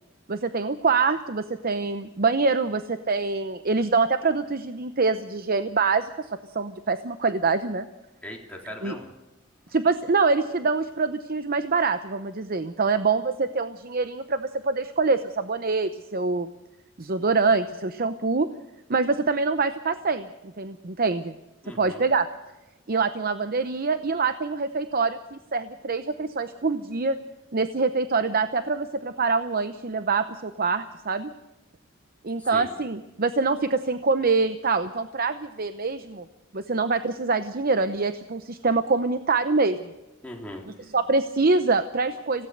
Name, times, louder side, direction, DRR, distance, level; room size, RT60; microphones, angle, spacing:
voice 1, 0.3-6.3 6.5-7.9 8.8-8.9 9.7-16.5 17.0-18.5 18.9-20.3 20.6-21.3 21.8-22.3 22.9-27.2 27.5-31.3 32.2-36.3 36.5-39.8 40.9-42.5, right 4 dB, 45° right, 10 dB, 0.8 m, -25 dB
voice 2, 8.2-9.1 12.8-12.9 21.6-22.0 32.4-32.7 40.2-40.9, left 1 dB, 5° left, -1 dB, 3.6 m, -40 dB
26.5 x 16.5 x 6.6 m, 1.0 s
head